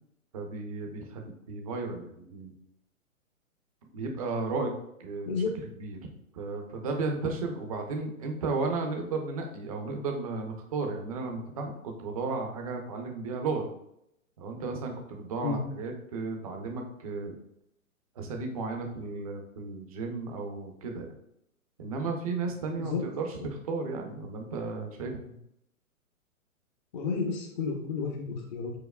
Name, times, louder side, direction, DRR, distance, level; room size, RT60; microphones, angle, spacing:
voice 1, 0.3-2.5 3.9-5.3 5.8-6.0 6.3-13.7 14.4-17.3 18.2-21.2 21.8-25.4, right 3 dB, 25° right, 2 dB, 0.4 m, -34 dB
voice 2, 26.9-28.7, left 5 dB, 35° left, 0 dB, 0.5 m, -31 dB
4.7 x 4.5 x 2.2 m, 0.78 s
hypercardioid pair, 135°, 43 cm